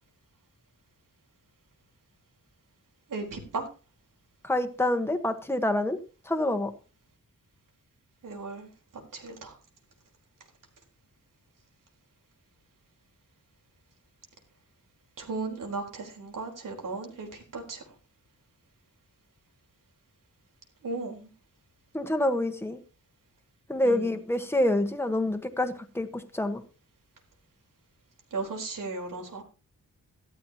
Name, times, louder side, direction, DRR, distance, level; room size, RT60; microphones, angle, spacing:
voice 1, 3.1-3.7 8.2-8.7 9.1-9.6 15.2-17.8 20.8-21.3 23.8-24.2 28.3-29.4, right 3 dB, 85° right, 1 dB, 4.2 m, -36 dB
voice 2, 4.4-6.0 6.3-6.7 21.9-22.8 23.7-26.6, left 1 dB, 10° left, 7 dB, 1.3 m, -27 dB
15.0 x 13.0 x 2.9 m, 0.35 s
wide cardioid pair, 160°, 31 cm